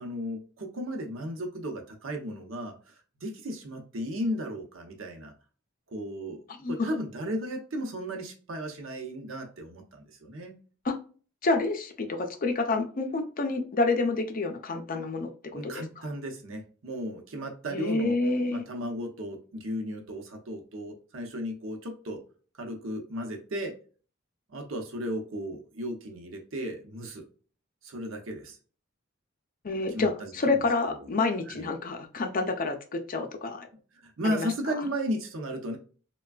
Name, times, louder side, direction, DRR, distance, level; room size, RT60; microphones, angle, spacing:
voice 1, 0.0-5.3 5.9-10.6 15.5-18.2 18.5-22.2 22.6-23.8 24.5-27.2 27.8-28.6 29.9-31.1 31.5-31.7 34.0-35.8, equal, 75° right, 3 dB, 0.8 m, -35 dB
voice 2, 6.5-7.0 10.8-11.0 11.4-15.7 17.7-18.6 29.6-33.7 34.2-34.5, left 3 dB, 45° left, 6 dB, 0.5 m, -28 dB
3.3 x 2.2 x 2.3 m, 0.38 s
head